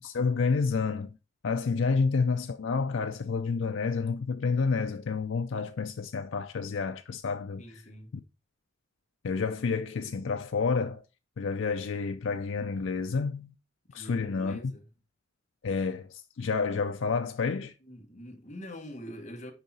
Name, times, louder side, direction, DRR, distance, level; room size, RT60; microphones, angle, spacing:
voice 1, 0.0-1.1 1.4-7.6 9.2-11.0 11.4-13.5 13.9-14.7 15.6-17.7, left 4 dB, 80° left, 0.5 m, -29 dB
voice 2, 7.6-8.1 13.9-14.9 17.8-19.5, equal, 40° left, 1.5 m, -44 dB
6.7 x 4.7 x 4.1 m
head